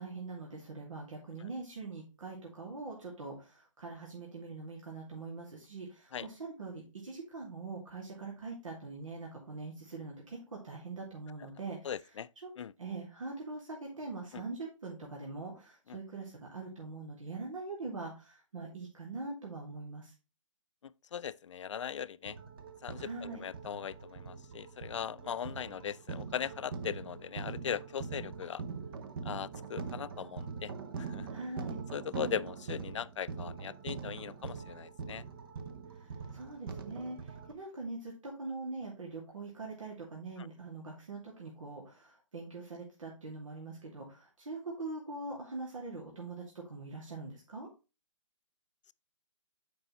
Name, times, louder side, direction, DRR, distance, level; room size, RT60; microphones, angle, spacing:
voice 1, 0.0-11.9 12.4-12.5 12.8-20.1 22.9-23.5 31.3-31.8 35.9-47.7, right 3 dB, 75° right, 2.5 m, -43 dB
voice 2, 11.8-12.3 12.6-12.7 14.3-14.4 15.9-16.0 21.1-22.4 22.8-28.6 29.2-30.7 31.0-31.3 31.9-35.2, left 8 dB, 65° left, 0.4 m, -39 dB
sound 1, 22.2-37.5, right 5 dB, 45° right, 0.9 m, -43 dB
7.7 x 5.3 x 3.1 m
hypercardioid pair, 150°, 17 cm